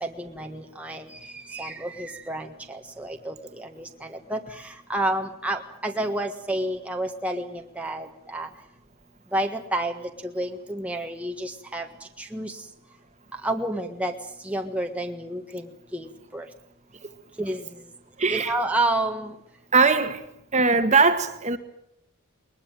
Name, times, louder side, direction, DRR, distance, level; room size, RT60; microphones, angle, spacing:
voice 1, 0.0-1.0 1.5-3.3 3.6-4.4 4.9-8.5 9.3-9.9 10.3-11.9 12.2-12.5 13.4-14.1 14.5-15.7 15.9-16.1 16.3-16.5 17.4-17.6 18.3-19.3, right 1 dB, 5° right, 3 dB, 1.5 m, -29 dB
voice 2, 18.2-18.5 19.7-20.2 20.5-21.6, right 4 dB, 30° right, 9 dB, 1.7 m, -20 dB
21.5 x 21.0 x 9.0 m, 0.74 s
head